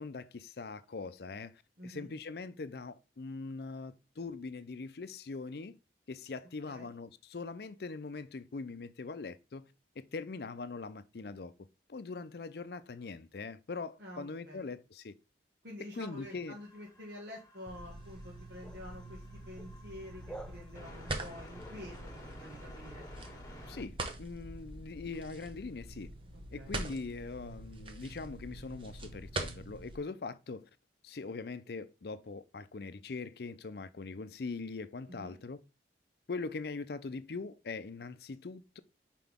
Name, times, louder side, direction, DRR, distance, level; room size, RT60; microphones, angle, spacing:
voice 1, 0.0-5.7 6.1-11.5 11.9-15.1 16.0-16.6 23.7-26.1 26.5-30.7 31.0-35.6 36.3-38.8, left 4 dB, 60° left, 0.5 m, -42 dB
voice 2, 1.8-2.1 6.7-6.9 14.0-14.7 15.6-23.0 26.3-26.7 35.1-35.4, left 1 dB, 65° right, 1.6 m, -48 dB
sound 1, 16.1-23.8, left 1 dB, 20° left, 1.7 m, -53 dB
sound 2, 17.7-23.9, right 1 dB, 5° left, 0.5 m, -54 dB
sound 3, 17.7-30.0, right 2 dB, 30° right, 0.9 m, -44 dB
5.9 x 4.5 x 3.5 m
head